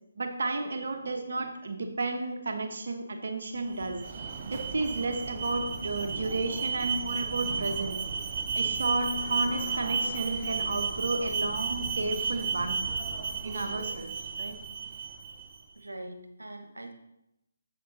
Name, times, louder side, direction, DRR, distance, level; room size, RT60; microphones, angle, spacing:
voice 1, 0.2-4.0 4.5-8.0 8.5-12.8 13.4-14.5, right 2 dB, 60° right, 5 dB, 1.3 m, -32 dB
Alarm, 3.6-15.6, right 5 dB, 35° right, 0.9 m, -33 dB
voice 2, 15.8-16.9, right 1 dB, 80° right, 6 dB, 1.4 m, -42 dB
7.8 x 7.4 x 4.1 m, 0.84 s
figure-of-eight pair, 145°, 0 cm